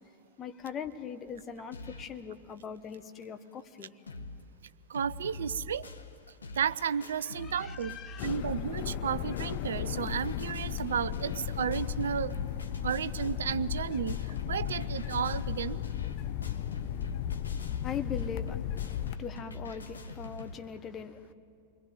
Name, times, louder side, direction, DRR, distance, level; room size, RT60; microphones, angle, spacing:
voice 1, 0.4-4.0 7.4-8.4 17.8-21.3, left 7 dB, 25° left, 9 dB, 1.5 m, -41 dB
sound 1, 1.7-2.2 2.6-2.7 2.9-3.0 3.5-3.6 3.8-4.4 4.7-20.5, left 3 dB, 75° left, 1.6 m, -45 dB
voice 2, 4.9-5.9 6.5-8.0 8.2-12.4 12.8-15.8, right 8 dB, 65° right, 17 dB, 0.6 m, -33 dB
sound 2, 8.2-19.2, left 10 dB, 45° left, 0.9 m, -35 dB
29.0 x 22.0 x 9.2 m, 2.5 s
figure-of-eight pair, 90°, 0 cm